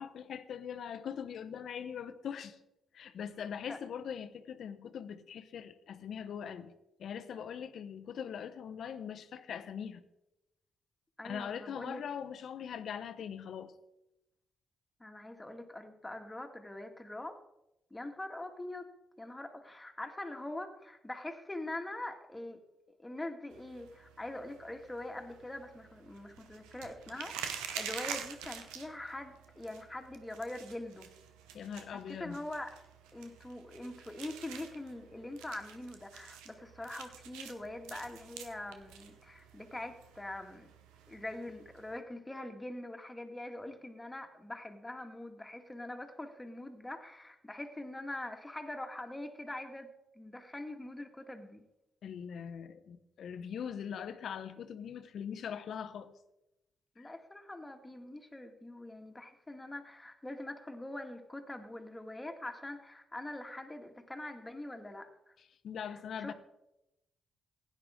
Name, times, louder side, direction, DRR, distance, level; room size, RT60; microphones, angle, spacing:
voice 1, 0.0-2.6 2.9-6.7 7.0-10.0 11.2-13.7 31.5-32.4 52.0-56.1 57.0-57.1 65.6-66.3, left 8 dB, 65° left, 0.9 m, -41 dB
voice 2, 11.2-12.0 15.0-17.4 17.9-18.9 19.2-22.6 23.0-31.1 31.9-32.7 33.1-40.7 41.1-49.9 50.2-51.6 57.0-65.3 65.9-66.3, left 1 dB, 15° left, 2.0 m, -43 dB
sound 1, 23.5-42.0, right 8 dB, 85° right, 0.9 m, -48 dB
16.0 x 9.7 x 3.7 m
hypercardioid pair, 45°, 0 cm